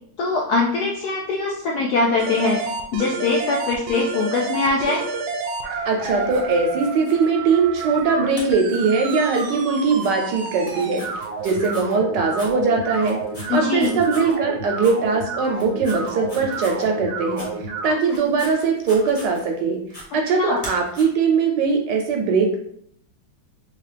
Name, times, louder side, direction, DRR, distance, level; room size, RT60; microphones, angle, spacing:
voice 1, 0.2-5.0 13.5-14.0 20.4-20.6, left 3 dB, 80° left, -1 dB, 0.9 m, -22 dB
sound 1, 2.2-17.9, right 4 dB, 90° right, 1.4 m, -30 dB
voice 2, 5.9-11.0 11.4-13.2 13.5-17.5 17.8-19.8 20.1-22.6, right 4 dB, 75° right, 2 dB, 1.1 m, -21 dB
sound 2, 6.0-7.3 7.7-8.0 8.3-9.5 9.9-10.1 10.6-11.9 12.3-12.5 12.9-14.3 14.8-14.9 15.4-16.9 17.3-17.5 18.0-19.6 19.9-20.0 20.5-21.0, equal, 25° left, 0.9 m, -41 dB
3.7 x 2.9 x 3.2 m, 0.67 s
omnidirectional pair, 2.2 m